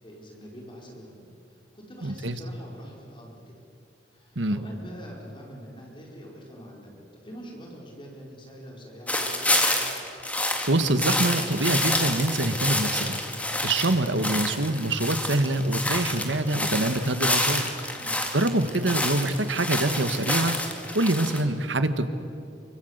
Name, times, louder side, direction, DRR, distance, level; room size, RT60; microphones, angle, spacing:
voice 1, 0.0-3.6 4.1-9.6 18.0-18.2, equal, 30° left, -1 dB, 4.8 m, -45 dB
voice 2, 2.0-2.4 4.3-4.6 10.7-13.2 13.6-17.7 18.3-20.6 20.9-22.1, right 2 dB, 90° right, 10 dB, 1.6 m, -25 dB
sound 1, 9.1-21.4, left 1 dB, 10° left, 2.3 m, -28 dB
26.0 x 24.5 x 8.1 m, 2.7 s
head